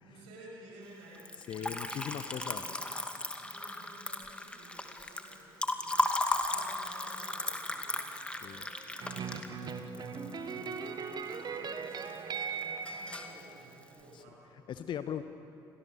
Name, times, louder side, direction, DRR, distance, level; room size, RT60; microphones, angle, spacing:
voice 1, 0.0-1.9 2.3-2.9 3.4-6.1 6.5-10.3 10.7-14.5, right 1 dB, 65° right, -1 dB, 6.8 m, -55 dB
Liquid, 1.1-11.4 11.7-12.4 12.6-13.4, left 1 dB, 10° left, 2.4 m, -35 dB
voice 2, 1.5-2.6 8.4-8.6 14.1-14.2 14.7-15.2, left 9 dB, 45° left, 10 dB, 1.0 m, -39 dB
sound 1, 9.0-14.1, right 5 dB, 35° right, 1.7 m, -39 dB
30.0 x 26.0 x 6.9 m, 2.6 s
figure-of-eight pair, 50°, 11 cm